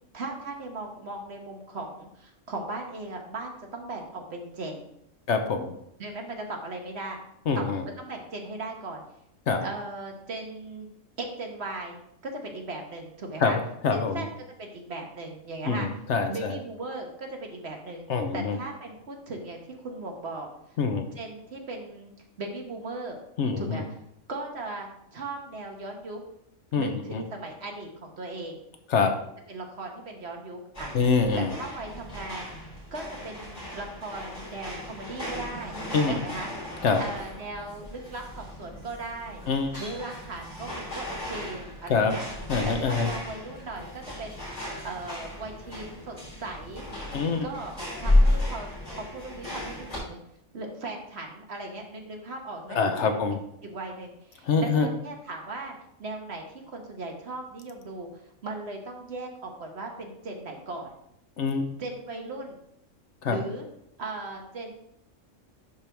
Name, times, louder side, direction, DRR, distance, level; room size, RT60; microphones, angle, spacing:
voice 1, 0.1-4.9 6.0-7.2 7.5-9.0 9.6-10.9 11.2-13.6 13.9-14.3 14.6-15.9 16.3-18.1 18.3-20.8 21.1-22.1 22.4-23.2 23.6-23.8 24.3-26.2 26.7-28.6 29.5-30.9 31.4-32.5 32.9-35.8 36.0-36.5 37.0-39.4 39.8-42.2 42.7-44.4 44.8-46.8 47.4-47.7 48.0-50.2 50.5-52.8 53.0-53.2 53.6-58.1 58.4-60.9 61.8-62.6 63.3-63.7 64.0-64.7, right 2 dB, 55° right, 2 dB, 1.4 m, -38 dB
voice 2, 5.3-5.7 7.5-7.8 9.5-9.6 13.4-14.2 15.6-16.6 18.1-18.6 20.8-21.1 23.4-23.8 26.7-27.2 28.9-29.1 30.9-31.5 35.9-36.2 36.8-37.0 39.5-39.8 41.9-42.1 42.5-43.1 47.1-47.5 52.7-53.4 54.4-54.9 61.4-61.7 63.2-63.4, left 5 dB, 65° left, 6 dB, 1.0 m, -25 dB
sound 1, 30.7-50.0, left 1 dB, 30° left, 3.1 m, -33 dB
11.0 x 4.5 x 3.4 m, 0.76 s
omnidirectional pair, 1.4 m